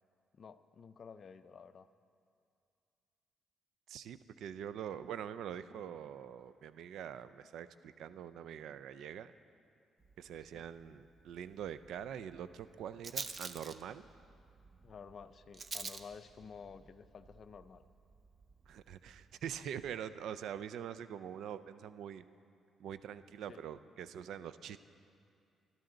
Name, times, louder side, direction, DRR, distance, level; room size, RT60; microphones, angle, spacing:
voice 1, 0.3-1.9 10.5-10.7 14.8-17.9 23.5-23.6, left 6 dB, 50° left, 11 dB, 0.5 m, -52 dB
voice 2, 3.9-9.3 10.2-14.1 18.7-22.2 22.8-24.8, right 9 dB, 75° right, 13 dB, 0.5 m, -44 dB
Rattle, 10.0-19.9, right 4 dB, 35° right, 0.6 m, -50 dB
21.0 x 12.0 x 3.9 m, 2.5 s
cardioid pair, 90°, 0 cm